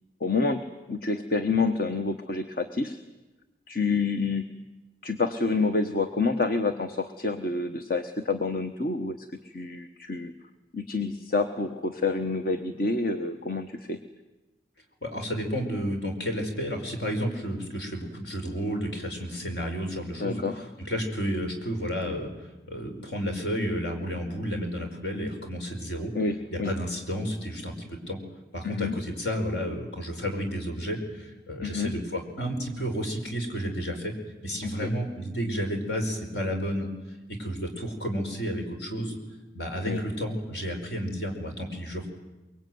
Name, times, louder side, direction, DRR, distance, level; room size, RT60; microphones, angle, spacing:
voice 1, 0.2-3.0 3.7-4.5 5.0-10.3 10.7-14.0 20.2-20.6 26.1-26.7 28.6-29.0 31.6-31.9 34.6-34.9 39.8-40.0, left 3 dB, 55° left, 7 dB, 1.2 m, -28 dB
voice 2, 15.0-20.4 20.9-26.1 26.5-28.2 28.5-34.1 34.4-36.9 37.3-39.2 39.5-42.1, equal, 70° left, 4 dB, 5.1 m, -31 dB
24.0 x 22.5 x 9.5 m, 1.1 s
head